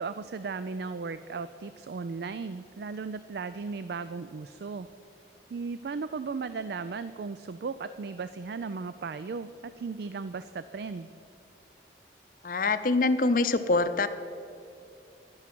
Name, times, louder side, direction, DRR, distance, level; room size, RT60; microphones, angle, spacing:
voice 1, 0.0-4.9 5.5-11.1, right 4 dB, 60° right, 12 dB, 0.4 m, -36 dB
voice 2, 12.4-14.1, left 3 dB, 45° left, 10 dB, 0.6 m, -24 dB
11.5 x 10.5 x 6.1 m, 2.7 s
head